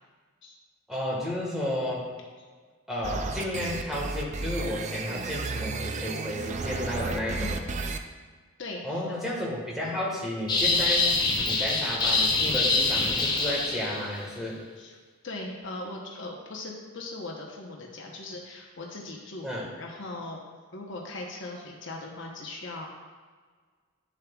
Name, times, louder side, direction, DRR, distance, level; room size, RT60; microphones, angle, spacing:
voice 1, 0.9-2.1 2.9-7.5 8.8-11.1 11.4-14.6 19.4-19.7, left 1 dB, ahead, -5 dB, 1.5 m, -32 dB
sound 1, 3.0-8.0, right 3 dB, 30° right, 0.4 m, -33 dB
voice 2, 8.6-9.0 14.8-15.0 15.2-19.5 19.8-20.4 20.7-22.9, left 2 dB, 55° left, -1 dB, 1.0 m, -39 dB
sound 2, 10.5-14.2, left 3 dB, 20° left, 0.7 m, -25 dB
10.0 x 7.3 x 2.4 m, 1.5 s
head